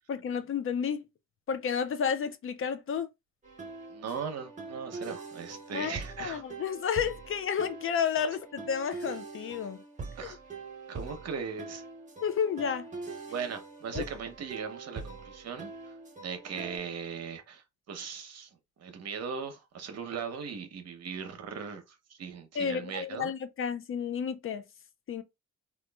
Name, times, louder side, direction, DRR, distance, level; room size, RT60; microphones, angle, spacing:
voice 1, 0.1-1.1 1.5-3.1 5.7-9.8 10.2-10.4 12.2-12.9 13.9-14.0 22.5-24.6 25.1-25.2, left 7 dB, 45° left, 0.5 m, -31 dB
sound 1, 3.4-16.8, right 4 dB, 25° right, 1.0 m, -43 dB
voice 2, 3.9-6.4 10.2-10.4 10.9-11.8 13.3-15.7 16.2-18.5 18.8-23.3, right 6 dB, 55° right, 0.8 m, -38 dB
2.9 x 2.4 x 2.3 m
cardioid pair, 90°, 30 cm